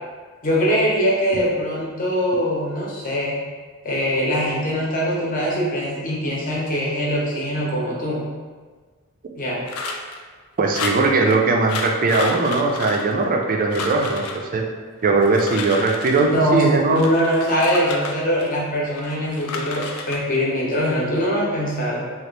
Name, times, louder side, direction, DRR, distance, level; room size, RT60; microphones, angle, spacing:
voice 1, 0.4-3.4 3.8-8.2 9.4-9.6 16.2-22.1, equal, 40° left, -5 dB, 0.8 m, -22 dB
sound 1, 9.7-10.2 10.7-11.4 11.7-13.4 13.7-14.4 15.1-16.4 16.9-18.6 19.0-20.2, left 3 dB, 70° left, 0.4 m, -31 dB
voice 2, 10.6-14.6 15.0-17.0, right 3 dB, 40° right, 1 dB, 0.4 m, -19 dB
2.9 x 2.4 x 3.1 m, 1.4 s
head